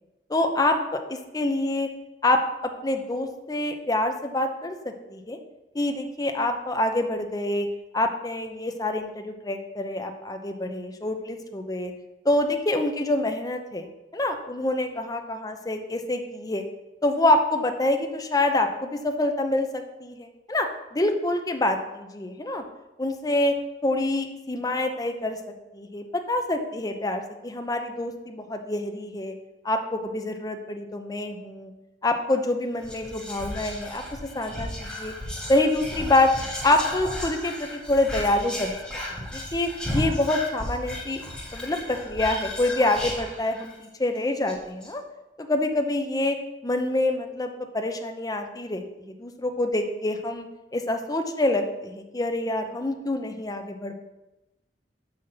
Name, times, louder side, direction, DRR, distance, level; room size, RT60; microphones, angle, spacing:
voice 1, 0.3-1.9 2.2-2.4 2.8-5.4 5.7-7.7 7.9-11.9 12.2-13.9 14.1-16.6 17.0-22.6 23.0-23.5 23.8-25.4 25.7-29.3 29.6-31.7 32.0-34.0 34.3-35.1 35.5-36.3 36.6-38.8 39.3-41.2 41.5-45.0 45.4-46.4 46.6-50.5 50.7-54.0, left 2 dB, 20° left, 5 dB, 0.7 m, -26 dB
Whispering, 32.8-43.8 44.2-44.3 44.5-44.9, left 1 dB, 5° left, 1.7 m, -34 dB
5.8 x 5.6 x 6.5 m, 1.0 s
head